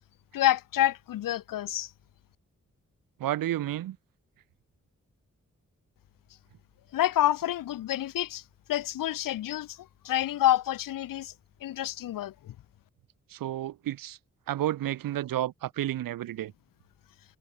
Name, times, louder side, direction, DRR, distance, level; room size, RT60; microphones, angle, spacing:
voice 1, 0.3-1.9 6.9-8.4 8.7-9.8 10.0-11.3 11.6-12.5, left 13 dB, 85° left, 0.8 m, -28 dB
voice 2, 3.2-4.0 13.3-14.2 14.5-16.5, right 13 dB, 90° right, 1.3 m, -31 dB
supercardioid pair, 40°, 33 cm